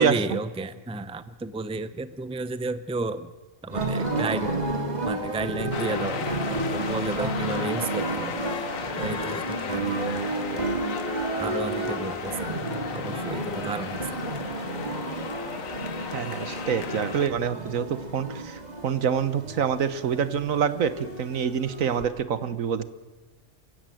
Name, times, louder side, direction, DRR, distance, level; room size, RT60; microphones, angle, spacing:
voice 1, 0.0-3.3 3.6-4.5 5.1-8.4 9.0-10.7 11.4-14.1, right 3 dB, 5° right, 12 dB, 0.6 m, -32 dB
sound 1, 3.7-22.0, right 2 dB, 30° right, 3.1 m, -31 dB
sound 2, 5.7-17.3, left 6 dB, 80° left, 1.6 m, -35 dB
voice 2, 16.1-22.9, right 7 dB, 80° right, 13 dB, 1.5 m, -26 dB
28.0 x 15.5 x 9.1 m, 1.2 s
omnidirectional pair, 1.4 m